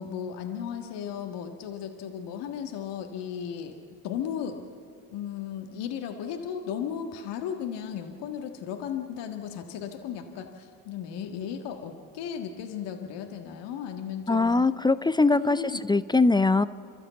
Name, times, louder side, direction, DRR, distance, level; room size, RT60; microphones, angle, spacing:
voice 1, 0.0-3.7 4.0-4.7 5.1-14.5 15.3-15.8, left 8 dB, 60° left, 4 dB, 1.7 m, -35 dB
voice 2, 14.3-15.6 15.9-16.6, left 3 dB, 10° left, 15 dB, 0.5 m, -21 dB
29.0 x 12.5 x 8.3 m, 2.4 s
hypercardioid pair, 65°, 46 cm